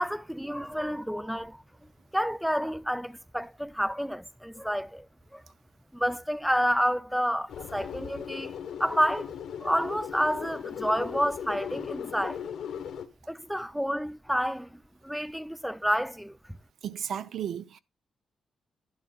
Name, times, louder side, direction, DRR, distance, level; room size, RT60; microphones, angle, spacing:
voice 1, 0.0-1.6 2.1-5.1 5.3-5.4 5.9-8.5 8.8-9.3 9.6-12.4 13.3-16.4, equal, ahead, 0.4 m, -29 dB
sound 1, 7.5-13.1, left 8 dB, 80° left, 1.3 m, -38 dB
voice 2, 16.8-17.8, right 9 dB, 75° right, 0.7 m, -34 dB
11.5 x 10.5 x 2.4 m
cardioid pair, 110°, 0 cm